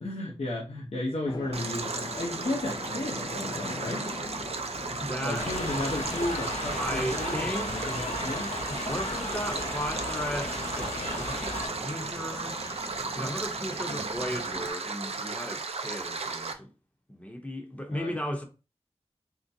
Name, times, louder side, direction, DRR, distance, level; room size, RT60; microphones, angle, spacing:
voice 1, 0.0-4.1 5.2-8.5 13.8-14.1 17.9-18.1, left 1 dB, 65° left, 0.8 m, -34 dB
sound 1, 1.3-14.7, left 3 dB, 40° left, 0.4 m, -42 dB
Stream, 1.5-16.5, right 4 dB, 65° right, 0.4 m, -35 dB
voice 2, 5.0-5.5 6.8-7.9 8.7-12.6 13.1-16.7 17.1-18.4, equal, 15° left, 0.8 m, -35 dB
sound 2, 5.3-11.7, left 1 dB, 90° left, 1.0 m, -35 dB
3.8 x 2.1 x 2.6 m
wide cardioid pair, 80°, 11 cm